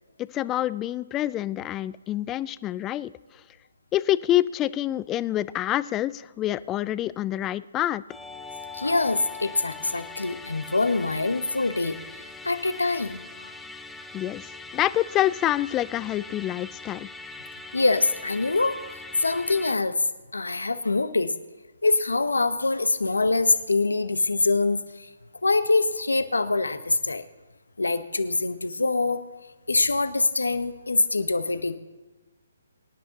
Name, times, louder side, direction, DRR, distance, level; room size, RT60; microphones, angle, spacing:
voice 1, 0.2-3.1 3.9-8.0 14.1-17.1, left 13 dB, 20° left, 18 dB, 0.4 m, -27 dB
Musical instrument, 8.1-19.8, left 3 dB, 5° left, 0.8 m, -42 dB
voice 2, 8.7-12.0 12.4-13.5 17.7-18.8 19.2-20.1 20.3-21.3 21.8-25.1 25.4-27.2 27.8-29.2 29.7-31.8, left 3 dB, 85° left, 11 dB, 1.0 m, -24 dB
24.5 x 11.0 x 2.9 m, 1.2 s
figure-of-eight pair, 140°, 0 cm